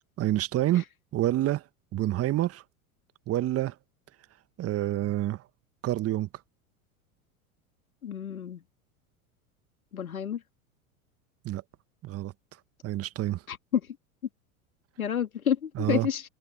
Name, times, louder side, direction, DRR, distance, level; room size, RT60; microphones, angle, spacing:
voice 1, 0.2-0.8 1.1-1.6 1.9-2.6 3.3-3.7 4.6-5.4 5.8-6.3 11.4-11.6 12.0-12.3 12.8-13.4 15.7-16.1, right 14 dB, 35° right, 1.2 m, -27 dB
voice 2, 8.0-8.6 9.9-10.4 13.5-13.8 15.0-16.2, left 9 dB, 85° left, 2.3 m, -29 dB
hypercardioid pair, 85°, 41 cm